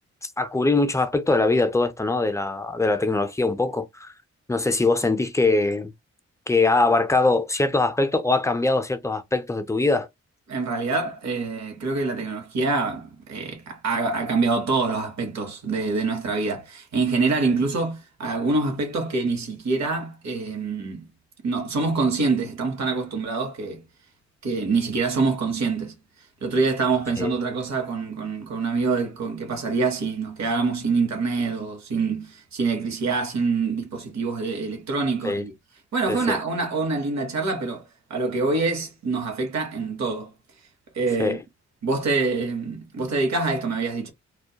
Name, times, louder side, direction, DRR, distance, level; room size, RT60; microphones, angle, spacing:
voice 1, 0.2-4.1 4.5-5.9 6.5-10.1 27.2-27.3 35.2-35.4 36.1-36.4 41.2-41.4, left 3 dB, 10° left, 0.4 m, -22 dB
voice 2, 10.5-21.1 21.4-23.8 24.4-25.9 26.4-35.5 35.9-40.3 40.9-41.4 41.8-44.1, right 3 dB, 65° right, 0.9 m, -25 dB
2.2 x 2.1 x 2.7 m
cardioid pair, 65°, 29 cm